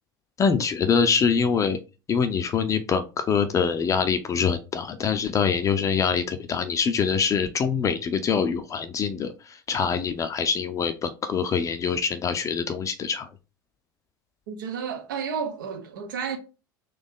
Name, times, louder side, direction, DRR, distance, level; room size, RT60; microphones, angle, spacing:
voice 1, 0.4-1.8 2.1-13.3, left 6 dB, 30° left, 0.5 m, -24 dB
voice 2, 14.5-16.4, right 6 dB, 70° right, 1.0 m, -31 dB
4.0 x 3.0 x 3.7 m
figure-of-eight pair, 80°, 11 cm